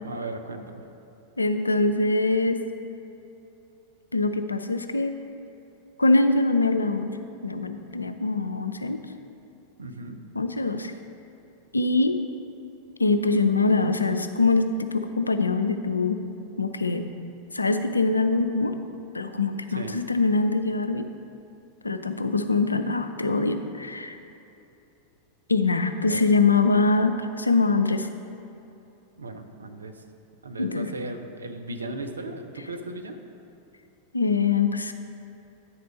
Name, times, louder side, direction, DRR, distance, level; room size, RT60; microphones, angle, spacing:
voice 1, 0.0-0.8 9.8-10.2 19.7-20.0 26.1-26.3 29.2-30.0 30.4-33.2, right 2 dB, 75° right, 6 dB, 0.5 m, -36 dB
voice 2, 1.4-2.6 4.1-5.1 6.0-7.1 7.4-9.0 10.4-10.9 11.7-12.2 13.0-16.2 16.6-17.1 17.5-18.8 19.1-21.1 21.8-24.2 25.5-28.1 30.6-30.9 34.1-34.9, left 3 dB, 80° left, 9 dB, 0.4 m, -23 dB
9.2 x 4.3 x 5.2 m, 2.8 s
figure-of-eight pair, 90°, 0 cm